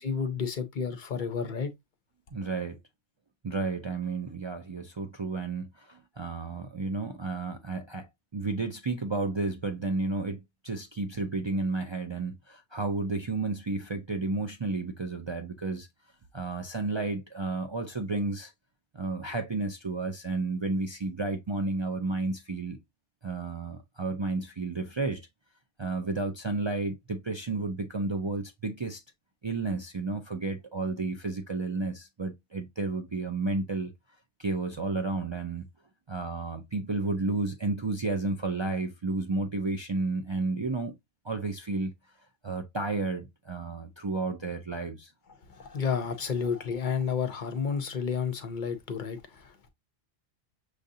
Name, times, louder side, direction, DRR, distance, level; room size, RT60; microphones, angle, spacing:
voice 1, 0.0-1.7 45.6-49.7, left 6 dB, 50° left, 0.7 m, -31 dB
voice 2, 2.3-2.8 3.4-15.9 16.3-18.5 18.9-22.8 23.2-25.3 25.8-29.0 29.4-33.9 34.4-35.7 36.1-40.9 41.2-41.9 42.4-45.1, right 3 dB, 50° right, 0.3 m, -32 dB
6.3 x 2.6 x 2.6 m
omnidirectional pair, 1.2 m